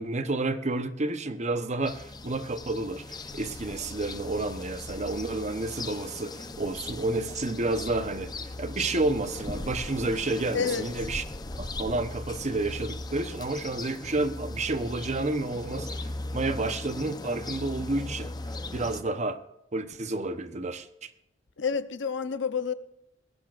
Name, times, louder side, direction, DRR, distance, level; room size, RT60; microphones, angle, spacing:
voice 1, 0.0-8.3 8.6-11.2 11.6-18.3 18.7-19.4 19.7-21.1, right 2 dB, 40° right, 0.9 m, -30 dB
sound 1, 1.9-19.0, left 2 dB, 20° left, 0.7 m, -38 dB
voice 2, 10.5-10.9 21.6-22.7, left 6 dB, 70° left, 0.8 m, -29 dB
19.5 x 15.5 x 2.5 m
head